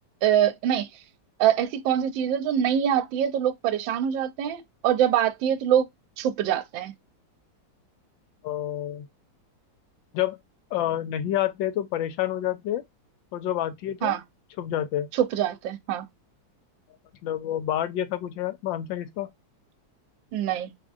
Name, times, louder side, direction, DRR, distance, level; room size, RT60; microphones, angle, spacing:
voice 1, 0.2-0.9 1.4-5.9 6.2-6.9 14.0-14.2 15.2-16.1 20.3-20.7, right 10 dB, 85° right, 1.3 m, -24 dB
voice 2, 8.4-9.1 10.1-10.4 10.7-12.8 13.3-14.2 14.6-15.1 17.2-19.3, left 12 dB, 85° left, 1.3 m, -28 dB
3.6 x 3.5 x 2.4 m
omnidirectional pair, 2.0 m